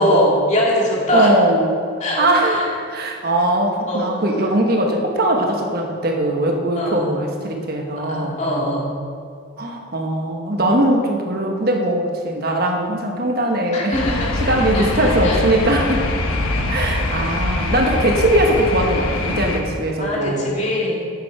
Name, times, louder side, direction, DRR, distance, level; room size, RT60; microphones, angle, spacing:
voice 1, 0.0-1.3 2.0-2.7 3.9-4.2 4.5-4.6 6.8-7.2 8.0-9.0 13.7-14.3 14.7-14.9 15.2-15.4 20.0-21.0, left 1 dB, 35° left, -4 dB, 2.2 m, -21 dB
voice 2, 1.1-1.8 2.2-2.7 2.9-8.4 9.6-14.0 14.4-16.1 16.7-20.6, right 1 dB, 45° right, 2 dB, 1.2 m, -20 dB
sound 1, 13.9-19.6, left 2 dB, 90° left, 1.2 m, -23 dB
9.5 x 9.2 x 4.7 m, 2.2 s
head